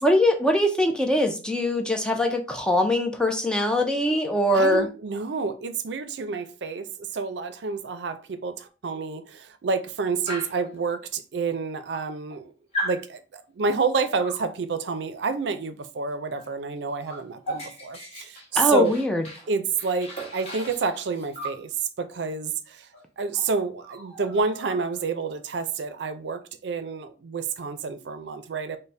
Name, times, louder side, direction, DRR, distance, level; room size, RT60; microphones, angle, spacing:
voice 1, 0.0-4.9 18.6-19.2, left 1 dB, 5° left, 0.4 m, -22 dB
voice 2, 4.5-12.5 12.8-18.9 19.5-21.7 22.0-22.9 23.2-28.8, right 4 dB, 80° right, 0.5 m, -29 dB
Dog, 10.3-10.7 11.5-11.6 11.9-12.4 12.7-13.0 14.2-14.5 16.3-16.5 16.8-19.5 19.8-21.6 22.9-23.0 23.3-23.5 23.8-25.1, right 1 dB, 35° left, 1.0 m, -37 dB
4.0 x 2.1 x 3.2 m
head